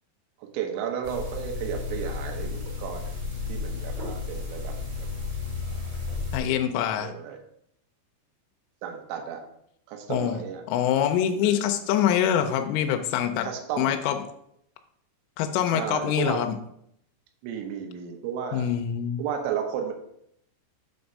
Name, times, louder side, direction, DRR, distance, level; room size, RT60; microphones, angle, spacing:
voice 1, 0.4-3.1 3.5-5.1 5.6-5.9 7.0-7.4 8.8-9.4 9.9-10.6 11.4-11.7 13.4-14.0 15.7-16.4 17.4-18.7 19.2-19.9, right 8 dB, 75° right, 4 dB, 3.0 m, -33 dB
sound 1, 1.0-6.4, left 4 dB, 45° right, 1.8 m, -33 dB
voice 2, 6.3-7.1 10.1-10.4 10.7-13.5 13.8-14.2 15.4-16.6 18.5-19.2, left 9 dB, 90° left, 6 dB, 3.1 m, -24 dB
7.3 x 3.5 x 5.3 m, 0.73 s
omnidirectional pair, 5.6 m